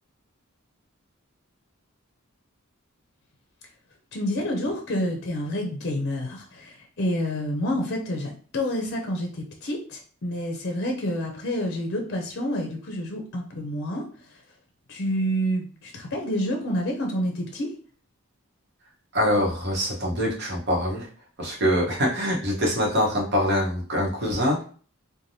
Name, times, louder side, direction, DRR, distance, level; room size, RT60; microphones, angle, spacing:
voice 1, 4.1-14.0 14.9-17.7, equal, 55° left, 1 dB, 0.5 m, -28 dB
voice 2, 19.1-21.1 21.4-24.6, equal, 55° right, -2 dB, 1.0 m, -24 dB
3.2 x 2.2 x 2.6 m, 0.42 s
head